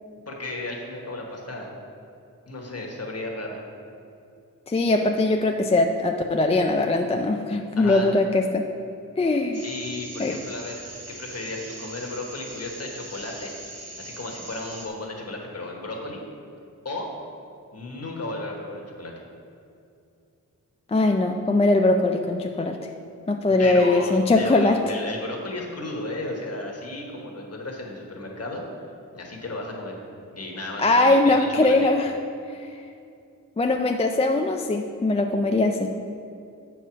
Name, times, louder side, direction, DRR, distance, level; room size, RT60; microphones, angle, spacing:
voice 1, 0.3-1.7 2.5-3.6 7.8-8.1 9.6-13.5 14.0-16.2 16.8-17.1 17.7-19.1 23.6-28.6 29.1-30.0 30.3-31.9, left 2 dB, 50° left, 0 dB, 1.3 m, -34 dB
voice 2, 4.7-8.7 9.2-9.6 10.2-10.4 20.9-22.8 23.3-24.8 30.8-32.1 33.6-35.9, left 2 dB, 20° left, 4 dB, 0.3 m, -21 dB
sound 1, 9.5-14.9, right 2 dB, 50° right, 1.3 m, -41 dB
7.9 x 4.6 x 6.0 m, 2.6 s
wide cardioid pair, 120°, 32 cm